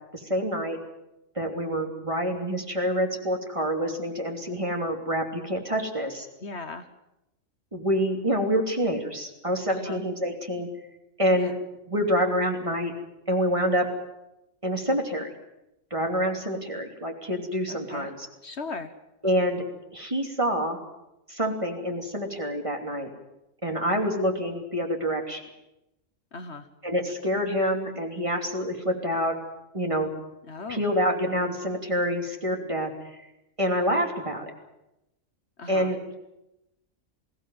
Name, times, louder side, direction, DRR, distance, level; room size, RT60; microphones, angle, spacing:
voice 1, 0.1-0.8 1.3-6.3 7.7-10.7 11.2-11.5 11.9-12.9 13.3-13.9 14.6-15.3 15.9-18.3 19.2-19.6 19.9-20.8 21.3-23.1 23.6-25.4 26.8-29.3 29.7-30.1 30.7-32.9 33.6-34.5 35.7-36.1, equal, 25° right, 2 dB, 3.1 m, -27 dB
voice 2, 6.4-6.9 9.7-10.0 11.3-11.5 17.7-18.1 18.4-18.9 26.3-26.7 30.5-30.8 35.6-35.9, left 3 dB, 55° left, 10 dB, 1.4 m, -37 dB
22.0 x 16.5 x 9.4 m, 0.91 s
omnidirectional pair, 1.4 m